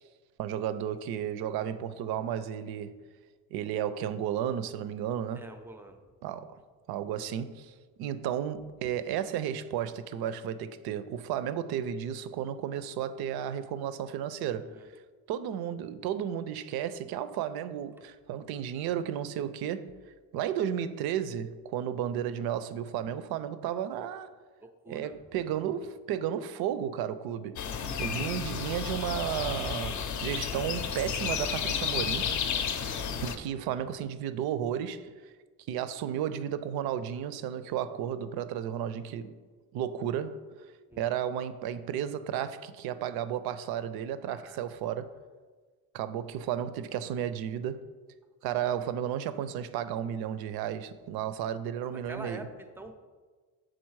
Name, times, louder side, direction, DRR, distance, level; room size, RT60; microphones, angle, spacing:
voice 1, 0.4-3.0 3.5-5.5 6.2-6.6 6.9-14.7 15.3-19.9 20.3-24.3 24.9-27.6 27.9-32.4 33.2-35.3 35.7-39.4 39.7-40.4 41.0-45.1 45.9-47.8 48.4-52.5, right 9 dB, 75° right, 0.5 m, -33 dB
voice 2, 5.3-6.0 14.7-14.9 24.6-25.2 40.9-41.1 44.3-44.6 51.8-52.9, right 2 dB, 5° right, 0.4 m, -46 dB
sound 1, 27.6-33.4, left 7 dB, 50° left, 0.6 m, -32 dB
6.3 x 3.9 x 4.6 m
cardioid pair, 130°, 38 cm